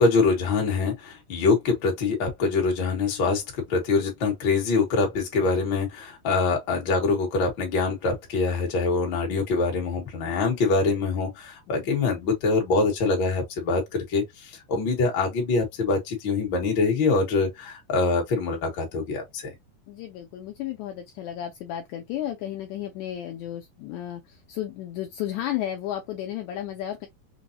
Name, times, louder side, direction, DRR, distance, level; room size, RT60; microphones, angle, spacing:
voice 1, 0.0-19.5, left 4 dB, 55° left, 1.3 m, -24 dB
voice 2, 19.9-27.1, left 12 dB, 80° left, 1.7 m, -33 dB
5.3 x 2.0 x 2.6 m
omnidirectional pair, 3.9 m